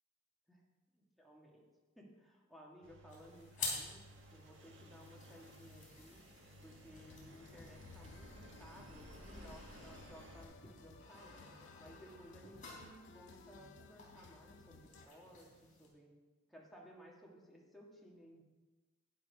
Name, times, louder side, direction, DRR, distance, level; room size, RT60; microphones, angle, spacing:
voice 1, 0.9-1.7 1.9-4.0 4.3-6.2 6.6-11.4 11.8-15.5 15.8-16.2 16.5-18.4, equal, ahead, -3 dB, 1.8 m, -58 dB
Engine, 2.8-10.4, equal, 90° right, 1.3 m, -57 dB
sound 1, 3.1-15.9, left 3 dB, 45° left, 3.7 m, -51 dB
sound 2, 7.0-15.1, left 4 dB, 70° left, 0.5 m, -59 dB
12.0 x 9.9 x 3.5 m, 1.2 s
head